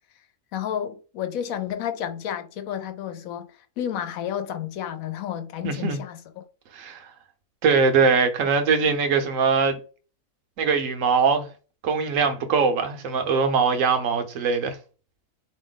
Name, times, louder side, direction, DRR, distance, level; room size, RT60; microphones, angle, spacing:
voice 1, 0.5-6.5, left 9 dB, 85° left, 1.1 m, -31 dB
voice 2, 5.6-6.0 6.7-7.1 7.6-9.8 10.6-11.5 11.8-14.8, right 5 dB, 70° right, 1.1 m, -22 dB
4.0 x 2.9 x 3.9 m
omnidirectional pair, 1.4 m